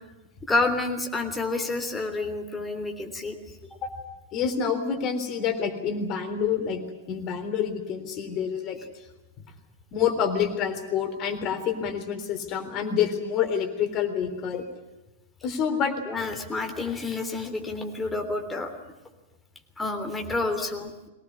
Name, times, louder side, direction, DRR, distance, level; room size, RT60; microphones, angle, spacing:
voice 1, 0.5-3.3 16.1-18.7 19.8-21.1, left 3 dB, 10° left, 4 dB, 3.4 m, -29 dB
voice 2, 4.3-6.8 7.1-8.8 9.9-14.6 15.4-15.9, left 7 dB, 35° left, 6 dB, 3.6 m, -27 dB
23.0 x 19.0 x 9.7 m, 1.0 s
figure-of-eight pair, 100°, 0 cm